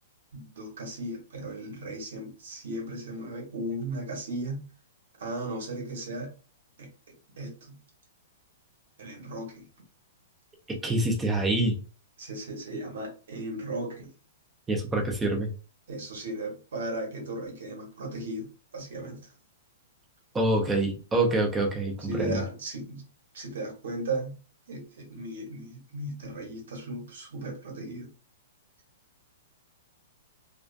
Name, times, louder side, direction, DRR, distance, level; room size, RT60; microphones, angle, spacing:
voice 1, 0.3-4.6 5.2-6.3 6.8-6.9 7.3-7.8 9.0-9.7 12.2-14.1 15.9-19.3 22.1-23.0 23.3-24.3 24.7-28.1, right 1 dB, 65° right, 1 dB, 1.0 m, -36 dB
voice 2, 10.7-11.8 14.7-15.5 20.3-22.4, right 2 dB, 10° right, 2 dB, 0.4 m, -26 dB
2.3 x 2.3 x 2.3 m, 0.35 s
hypercardioid pair, 175°, 0 cm